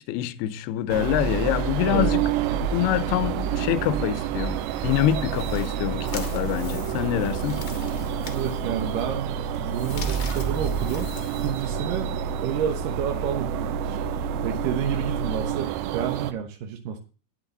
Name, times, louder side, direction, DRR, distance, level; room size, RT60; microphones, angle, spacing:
voice 1, 0.0-2.2 2.6-4.6 4.8-7.6, left 13 dB, 80° left, 2.5 m, -25 dB
sound 1, 0.9-16.3, right 7 dB, 90° right, 3.0 m, -28 dB
sound 2, 4.4-12.2, left 5 dB, 60° left, 1.3 m, -44 dB
voice 2, 8.3-11.1 11.4-12.1 12.4-14.0 14.4-17.0, right 9 dB, 70° right, 2.2 m, -30 dB
12.0 x 9.6 x 4.0 m
omnidirectional pair, 5.0 m